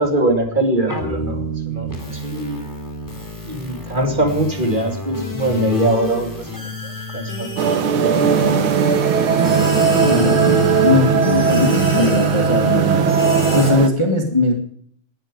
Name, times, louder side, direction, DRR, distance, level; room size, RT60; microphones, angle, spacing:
voice 1, 0.0-2.6 3.4-7.6 7.9-8.5, right 1 dB, 15° right, 3 dB, 2.5 m, -22 dB
sound 1, 0.9-13.7, right 3 dB, 5° left, 3.2 m, -25 dB
sound 2, 7.6-13.9, right 6 dB, 85° right, 1.1 m, -18 dB
voice 2, 10.0-13.1 13.5-14.6, left 2 dB, 40° left, 3 dB, 0.4 m, -19 dB
18.5 x 10.0 x 5.3 m, 0.63 s
omnidirectional pair, 3.9 m